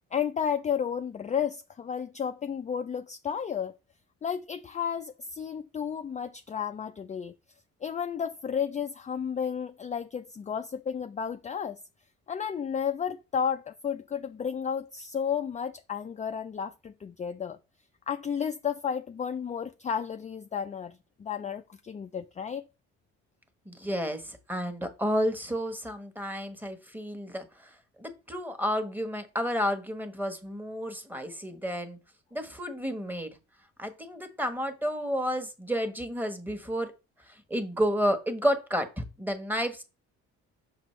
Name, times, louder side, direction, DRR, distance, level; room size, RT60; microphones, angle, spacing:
voice 1, 0.1-3.7 4.2-7.3 7.8-11.8 12.3-17.6 18.1-22.6, left 7 dB, 25° left, 0.4 m, -32 dB
voice 2, 23.7-27.7 28.0-32.0 32.3-33.3 33.8-36.9 37.5-39.8, equal, 5° right, 1.1 m, -31 dB
6.0 x 5.3 x 3.1 m
cardioid pair, 90°, 30 cm